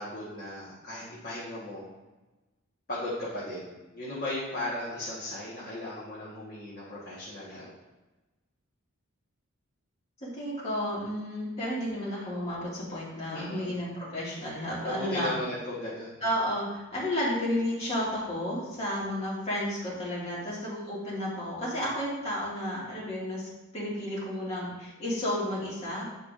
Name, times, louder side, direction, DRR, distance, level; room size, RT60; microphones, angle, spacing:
voice 1, 0.0-1.9 2.9-7.7 13.3-13.7 14.8-16.1, left 1 dB, 45° left, -8 dB, 1.3 m, -36 dB
voice 2, 10.2-15.3 16.2-26.1, left 1 dB, 30° left, -7 dB, 2.0 m, -32 dB
8.1 x 4.6 x 2.5 m, 1.1 s
head